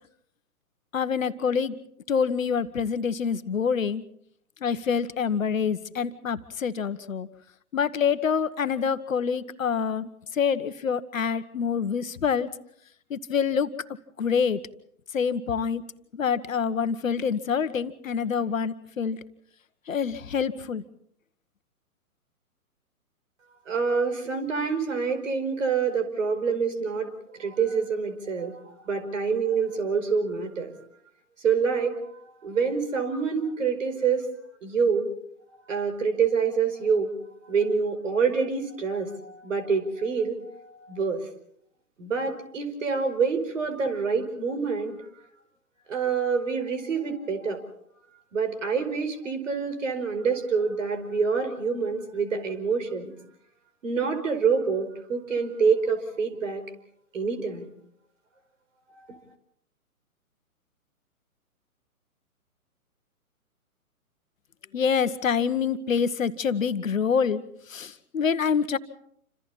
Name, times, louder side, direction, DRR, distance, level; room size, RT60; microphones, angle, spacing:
voice 1, 0.9-1.7 2.1-4.0 4.6-7.3 7.7-12.5 13.1-13.7 14.2-14.6 15.1-15.8 16.1-19.2 19.9-20.8 64.7-67.4 67.7-68.8, left 6 dB, 60° left, 12 dB, 1.4 m, -26 dB
voice 2, 23.7-27.1 27.4-28.6 28.8-30.7 31.4-32.0 32.4-34.3 34.6-35.1 35.7-37.1 37.5-41.3 42.0-44.9 45.9-47.6 48.3-53.1 53.8-56.6 57.1-57.7 59.1-59.2, right 5 dB, 60° right, 8 dB, 5.0 m, -26 dB
28.5 x 26.5 x 4.3 m, 0.68 s
figure-of-eight pair, 125°, 44 cm